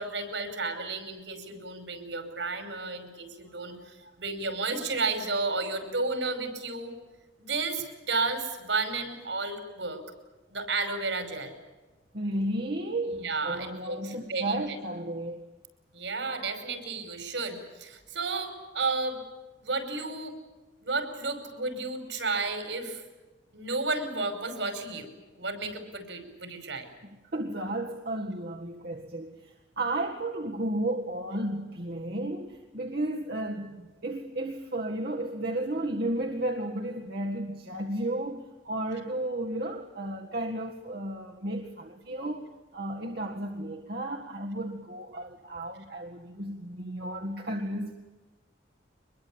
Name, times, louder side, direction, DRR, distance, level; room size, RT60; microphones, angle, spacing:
voice 1, 0.0-6.9 7.4-10.0 10.5-11.5 13.1-14.6 15.9-19.2 19.6-20.4 20.8-23.0 23.5-25.1 25.4-26.9, right 3 dB, 75° right, 5.3 m, -32 dB
voice 2, 3.5-4.1 12.1-15.5 27.3-47.9, right 1 dB, 55° right, 1.8 m, -33 dB
24.5 x 22.0 x 8.7 m
head